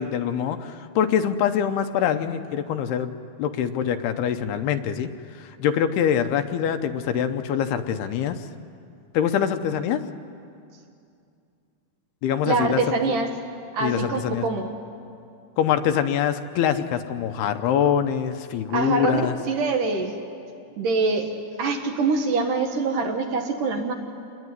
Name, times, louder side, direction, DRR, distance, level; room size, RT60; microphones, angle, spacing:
voice 1, 0.0-3.1 3.4-5.1 5.4-8.5 9.1-10.0 12.2-12.8 13.8-14.4 15.6-19.4, left 9 dB, 75° left, 8 dB, 2.7 m, -24 dB
voice 2, 12.5-13.3 13.7-14.6 18.7-19.1 19.5-20.1 20.8-21.3 21.6-23.9, right 4 dB, 60° right, 4 dB, 2.7 m, -24 dB
27.5 x 21.0 x 9.6 m, 2.5 s
omnidirectional pair, 4.8 m